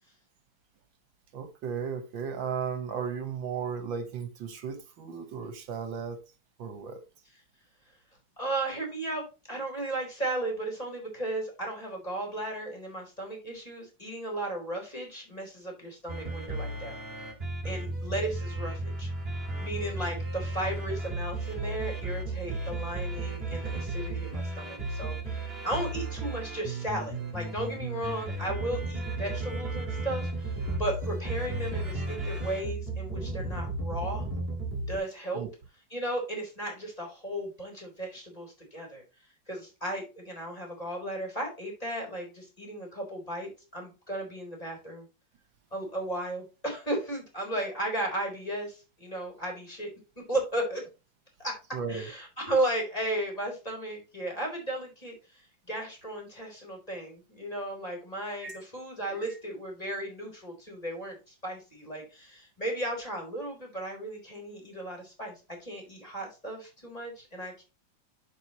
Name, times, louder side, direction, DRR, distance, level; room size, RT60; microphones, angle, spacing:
voice 1, 1.3-6.3 6.6-7.0 22.7-22.8 33.6-33.7 35.3-35.5 51.7-52.1 58.4-58.6 59.1-59.2, right 6 dB, 75° right, 1.9 m, -35 dB
voice 2, 8.4-17.0 17.6-19.1 19.6-34.3 34.8-35.4 35.9-39.0 39.5-45.1 45.7-50.8 51.4-51.6 51.9-65.3 65.6-67.6, right 1 dB, 20° left, 3.7 m, -35 dB
sound 1, 16.1-35.0, right 2 dB, 30° right, 2.2 m, -34 dB
11.5 x 4.9 x 2.9 m
omnidirectional pair, 2.1 m